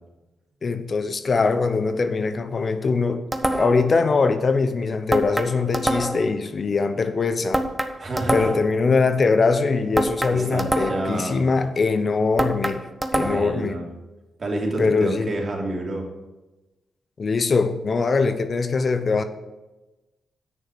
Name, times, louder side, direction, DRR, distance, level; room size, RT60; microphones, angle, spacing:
voice 1, 0.6-3.3 3.6-7.6 8.3-12.9 13.1-13.7 14.8-15.3 17.2-19.2, left 4 dB, 50° left, 0.8 m, -22 dB
sound 1, 3.3-3.9 5.1-6.3 7.5-8.8 10.0-11.2 12.4-13.6, right 1 dB, 10° right, 1.0 m, -25 dB
voice 2, 8.0-8.5 10.3-11.5 13.2-13.8 14.4-16.1, right 2 dB, 50° right, 2.7 m, -28 dB
8.8 x 6.5 x 6.1 m
supercardioid pair, 50°, 0 cm